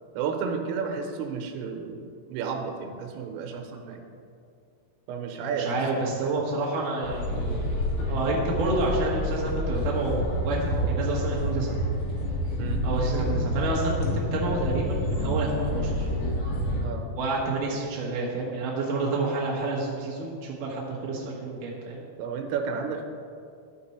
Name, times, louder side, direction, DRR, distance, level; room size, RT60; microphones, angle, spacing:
voice 1, 0.2-4.0 5.1-5.7 6.0-6.1 8.7-8.9 12.6-12.8 16.8-17.1 22.2-23.0, right 6 dB, 85° right, 4 dB, 3.4 m, -32 dB
voice 2, 5.6-7.8 8.1-11.8 12.8-16.1 17.2-22.0, right 2 dB, 70° right, -4 dB, 2.0 m, -29 dB
sound 1, 7.0-16.8, equal, 80° left, 1.8 m, -28 dB
12.5 x 5.2 x 4.3 m, 2.4 s
omnidirectional pair, 5.7 m